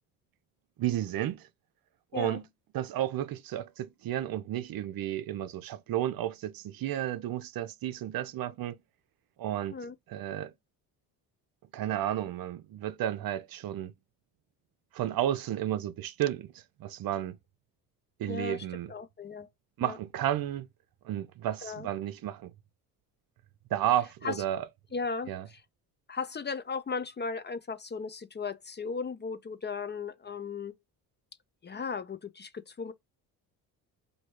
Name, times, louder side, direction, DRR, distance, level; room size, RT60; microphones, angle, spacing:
voice 1, 0.8-1.5 2.1-2.4 2.7-8.8 9.4-9.8 10.1-10.5 11.7-13.9 14.9-16.5 16.8-17.4 18.2-18.9 19.8-20.7 21.0-22.5 23.7-24.6 25.3-25.4, right 12 dB, 55° right, 0.7 m, -32 dB
voice 2, 18.3-19.5 19.8-20.0 21.6-21.9 24.2-24.4 24.9-25.6 26.1-30.7 31.6-32.9, left 5 dB, 25° left, 0.5 m, -36 dB
3.0 x 2.8 x 4.4 m
supercardioid pair, 65°, 42 cm